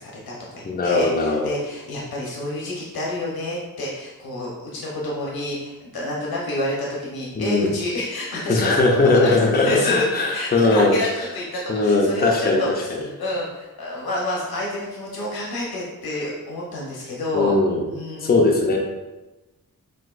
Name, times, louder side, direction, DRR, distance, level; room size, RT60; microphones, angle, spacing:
voice 1, 0.0-10.0 10.3-17.5 17.9-18.8, left 1 dB, 80° left, -4 dB, 0.9 m, -29 dB
voice 2, 0.6-1.5 7.4-7.8 8.5-11.0 11.7-12.6 17.3-17.8 18.2-18.8, left 2 dB, 25° left, 0 dB, 0.5 m, -19 dB
6.2 x 2.5 x 2.4 m, 1.1 s
wide cardioid pair, 170°, 36 cm